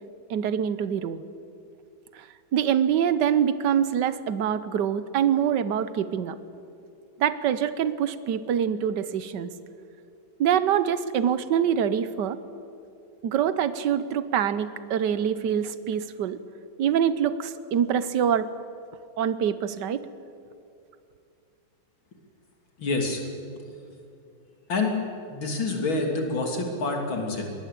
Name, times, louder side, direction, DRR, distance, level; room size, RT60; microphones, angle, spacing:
voice 1, 0.3-1.2 2.1-6.4 7.2-9.5 10.4-12.4 13.2-16.4 16.8-18.5 19.2-20.0, right 9 dB, 60° right, 14 dB, 1.5 m, -25 dB
voice 2, 22.8-23.2 24.7-24.9 25.3-27.5, left 3 dB, 70° left, 2 dB, 3.7 m, -27 dB
22.5 x 19.5 x 8.5 m, 2.5 s
omnidirectional pair, 2.2 m